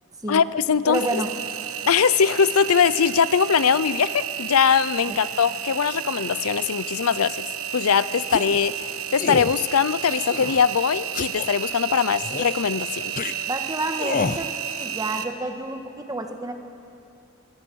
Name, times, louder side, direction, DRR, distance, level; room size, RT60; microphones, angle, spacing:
voice 1, 0.3-1.2 1.9-7.5 7.7-8.7 9.1-13.1, left 6 dB, 80° left, 16 dB, 0.6 m, -21 dB
voice 2, 0.8-1.3 5.1-5.2 13.5-14.5 14.8-16.5, right 2 dB, 15° right, 5 dB, 1.6 m, -29 dB
Engine, 0.9-15.2, right 9 dB, 75° right, 1.3 m, -32 dB
sound 1, 8.3-8.6 9.2-9.5 10.1-10.6 11.1-11.5 12.2-12.6 13.2-13.3 14.0-14.4, left 4 dB, 40° left, 0.6 m, -28 dB
27.0 x 20.5 x 6.3 m, 2.6 s
head